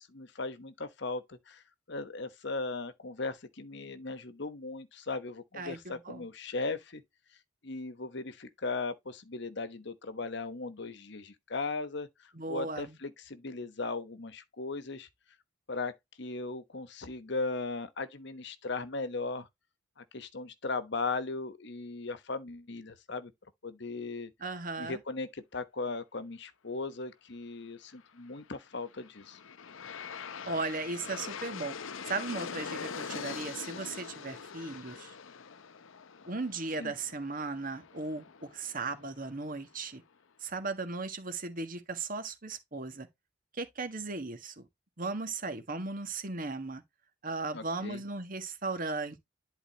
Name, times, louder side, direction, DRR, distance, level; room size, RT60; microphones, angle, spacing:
voice 1, 0.0-1.6 1.9-7.0 7.6-12.1 12.5-15.1 15.7-19.5 20.0-23.3 23.6-24.3 24.8-29.4 36.8-36.9 47.5-48.0, left 3 dB, 60° left, 1.1 m, -37 dB
voice 2, 5.6-6.2 12.3-13.0 24.4-25.0 30.4-31.7 32.0-35.1 36.2-40.0 40.4-43.1 43.5-44.7 45.0-46.8 47.2-49.2, right 3 dB, 45° right, 1.6 m, -37 dB
Aircraft, 28.7-39.8, left 6 dB, 85° left, 0.7 m, -43 dB
11.0 x 4.1 x 2.9 m
head